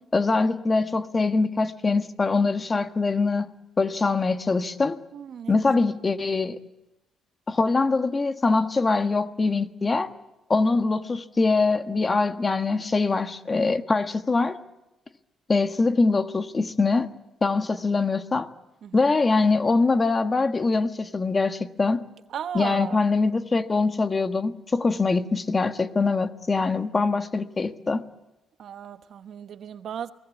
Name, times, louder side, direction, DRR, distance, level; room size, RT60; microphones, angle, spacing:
voice 1, 0.1-3.5 3.8-5.0 5.5-6.6 7.5-10.1 10.5-14.6 15.5-17.1 17.4-18.5 18.9-22.0 22.5-28.0, left 3 dB, 30° left, 1.4 m, -23 dB
voice 2, 5.1-5.6 18.8-19.1 22.3-23.0 28.6-30.1, right 8 dB, 65° right, 1.1 m, -35 dB
29.5 x 20.0 x 8.3 m
cardioid pair, 90°, 0 cm